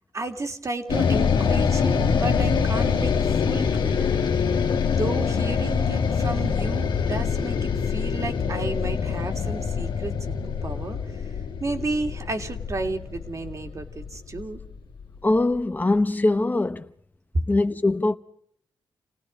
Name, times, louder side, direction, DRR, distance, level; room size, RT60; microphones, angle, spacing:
voice 1, 0.1-4.2 4.5-14.6 17.3-17.5, right 2 dB, 45° right, 2.7 m, -32 dB
sound 1, 0.9-15.2, left 6 dB, 85° left, 1.9 m, -25 dB
voice 2, 15.2-16.9 17.5-18.1, left 2 dB, 25° left, 0.9 m, -22 dB
30.0 x 18.0 x 5.2 m
cardioid pair, 80°, 8 cm